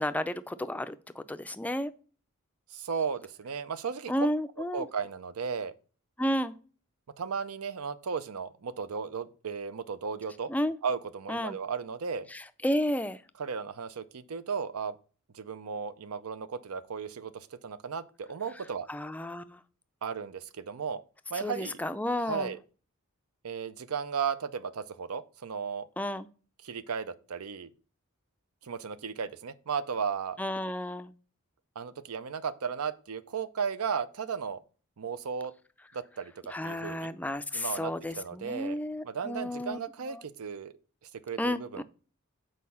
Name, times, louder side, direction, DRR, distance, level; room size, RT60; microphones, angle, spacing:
voice 1, 0.0-1.9 4.1-4.9 6.2-6.5 10.5-10.8 11.3-11.6 12.3-13.2 18.9-19.6 21.4-22.5 26.0-26.3 30.4-31.1 36.5-39.8 40.1-40.2 41.4-41.8, left 1 dB, 5° left, 0.4 m, -32 dB
voice 2, 2.7-4.3 4.7-5.7 7.2-10.5 10.8-12.3 13.4-14.9 15.3-18.9 20.0-21.0 21.3-21.8 22.2-22.6 23.4-25.9 26.6-27.7 28.6-30.4 31.8-34.6 35.0-35.5 35.9-36.3 36.6-37.1 37.5-38.8 39.0-40.7 41.2-41.8, right 6 dB, 80° right, 0.6 m, -35 dB
6.5 x 4.6 x 5.5 m
head